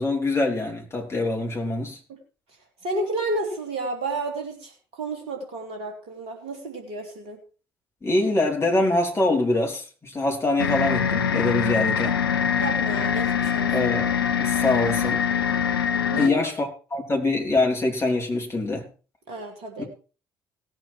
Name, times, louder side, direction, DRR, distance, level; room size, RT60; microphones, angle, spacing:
voice 1, 0.0-2.0 8.0-12.2 13.7-14.1 14.4-15.2 16.2-18.8 19.8-19.9, left 2 dB, 20° left, 0 dB, 4.5 m, -24 dB
voice 2, 2.8-7.4 12.6-13.9 16.1-16.3 19.3-19.8, right 2 dB, 55° right, 3 dB, 3.4 m, -31 dB
sound 1, 10.6-16.3, left 7 dB, 80° left, 0.6 m, -23 dB
17.5 x 7.8 x 4.5 m, 0.35 s
figure-of-eight pair, 50°, 12 cm